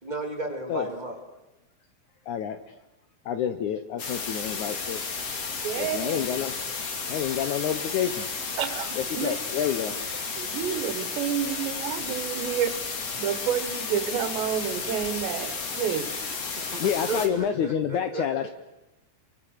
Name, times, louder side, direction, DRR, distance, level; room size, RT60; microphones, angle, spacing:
voice 1, 0.0-1.2 16.5-18.2, right 2 dB, 15° right, 2 dB, 1.9 m, -34 dB
voice 2, 2.3-2.6 3.2-5.0 5.8-6.5 7.1-8.3 9.0-10.0 16.8-18.5, left 9 dB, 90° left, 9 dB, 1.7 m, -28 dB
sound 1, 4.0-17.3, left 4 dB, 40° left, 3.0 m, -33 dB
voice 3, 5.6-6.3 8.6-9.4 10.4-12.8 13.2-16.3, right 9 dB, 90° right, 10 dB, 3.7 m, -29 dB
28.0 x 24.0 x 6.6 m, 1.0 s
omnidirectional pair, 4.9 m